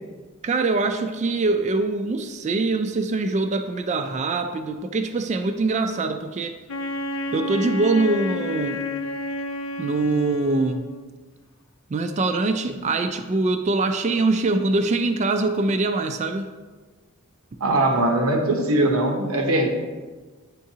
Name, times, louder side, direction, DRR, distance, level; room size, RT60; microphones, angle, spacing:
voice 1, 0.4-6.5 7.3-8.8 9.8-10.8 11.9-16.5, right 3 dB, 35° right, 7 dB, 0.3 m, -23 dB
Wind instrument woodwind instrument, 6.7-11.1, left 1 dB, 70° left, 0.4 m, -30 dB
voice 2, 17.6-19.7, right 1 dB, 85° right, 2 dB, 0.8 m, -21 dB
10.5 x 3.7 x 2.8 m, 1.4 s
head